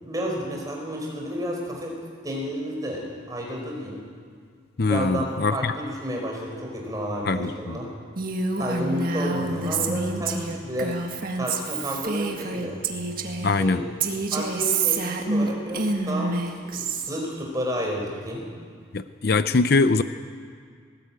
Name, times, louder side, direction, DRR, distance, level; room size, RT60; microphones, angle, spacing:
voice 1, 0.0-2.0 2.2-4.0 4.9-7.9 8.6-11.0 11.3-12.8 13.6-13.8 14.3-18.5, equal, 20° right, 0 dB, 4.7 m, -31 dB
voice 2, 4.8-5.7 7.2-7.8 13.4-13.8 18.9-20.0, left 3 dB, 50° left, 11 dB, 0.6 m, -22 dB
Female speech woman speaking, 8.1-13.5 14.0-17.1, right 3 dB, 45° right, 1.8 m, -27 dB
sound 1, 9.3-11.2 12.2-13.7, left 1 dB, 25° left, 7.6 m, -41 dB
19.0 x 18.5 x 8.9 m, 2.1 s
head